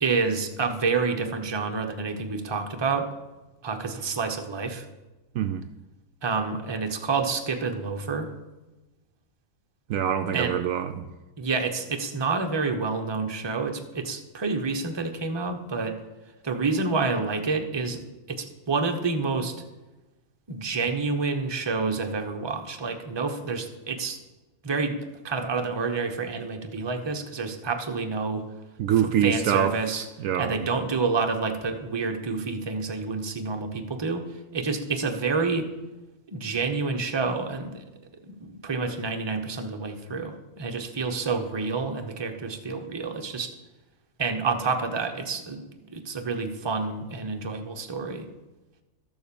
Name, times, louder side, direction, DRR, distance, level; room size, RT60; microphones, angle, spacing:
voice 1, 0.0-3.1 3.6-4.9 6.2-8.3 10.3-10.6 11.4-16.0 16.4-18.0 18.3-19.5 20.5-24.2 24.6-25.0 25.2-28.4 29.0-30.1 30.4-34.3 34.5-35.7 36.3-37.8 38.2-43.5 44.2-45.6 45.9-48.3, right 4 dB, 20° right, 0.8 m, -28 dB
voice 2, 5.3-5.7 9.9-11.1 28.8-29.8 30.2-30.6, right 9 dB, 70° right, 0.9 m, -25 dB
13.0 x 7.1 x 7.0 m
omnidirectional pair, 1.5 m